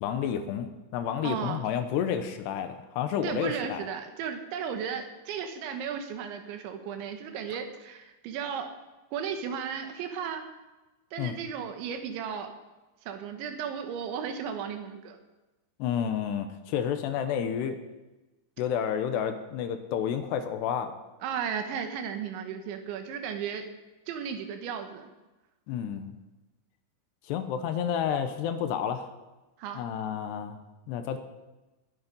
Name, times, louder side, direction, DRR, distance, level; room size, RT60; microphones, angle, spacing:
voice 1, 0.0-3.9 11.2-11.3 15.8-17.8 18.6-20.9 25.7-26.2 27.3-29.1 29.7-30.6 30.9-31.2, left 8 dB, 75° left, 8 dB, 2.8 m, -30 dB
voice 2, 1.2-1.6 3.2-8.7 9.1-10.4 11.1-12.5 13.1-15.2 21.2-23.7 24.1-25.1 29.6-29.8, right 7 dB, 85° right, 6 dB, 3.6 m, -35 dB
20.0 x 8.7 x 5.4 m, 1.1 s
omnidirectional pair, 5.2 m